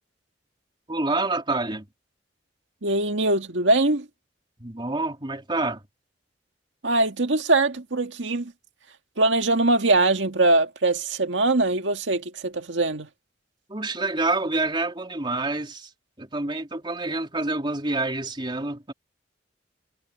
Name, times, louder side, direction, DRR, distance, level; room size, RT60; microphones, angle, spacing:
voice 1, 0.9-1.9 4.6-5.8 13.7-15.9 16.2-18.9, right 2 dB, 25° right, 3.3 m, -27 dB
voice 2, 2.8-4.1 6.8-8.5 9.2-13.1, right 2 dB, 85° right, 1.9 m, -22 dB
head